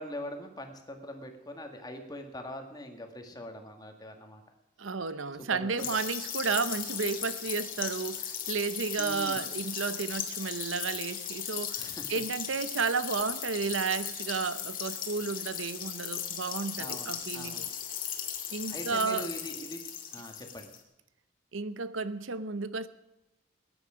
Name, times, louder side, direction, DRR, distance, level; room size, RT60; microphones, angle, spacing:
voice 1, 0.0-4.4 5.4-6.0 9.0-9.4 11.8-12.1 16.8-17.7 18.7-19.8 20.1-20.7, left 1 dB, 20° left, 4 dB, 2.0 m, -42 dB
voice 2, 4.8-17.7 18.5-19.3 21.5-22.9, right 4 dB, 90° right, 14 dB, 0.8 m, -32 dB
sound 1, 5.8-20.8, left 9 dB, 45° left, 2.3 m, -37 dB
19.5 x 10.0 x 5.1 m, 0.93 s
head